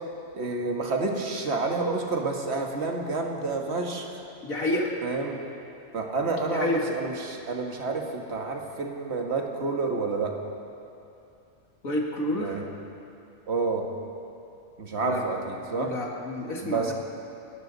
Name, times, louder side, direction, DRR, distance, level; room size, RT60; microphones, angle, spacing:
voice 1, 0.3-4.2 5.0-5.4 5.9-10.3 12.4-12.6 13.5-13.9 14.8-15.9 16.6-16.9, right 3 dB, 50° right, 1 dB, 1.8 m, -29 dB
voice 2, 4.4-4.9 6.5-6.8 11.8-12.6 15.0-15.2 15.8-16.9, left 1 dB, 80° left, -1 dB, 2.3 m, -29 dB
28.0 x 12.5 x 4.0 m, 2.7 s
omnidirectional pair, 1.4 m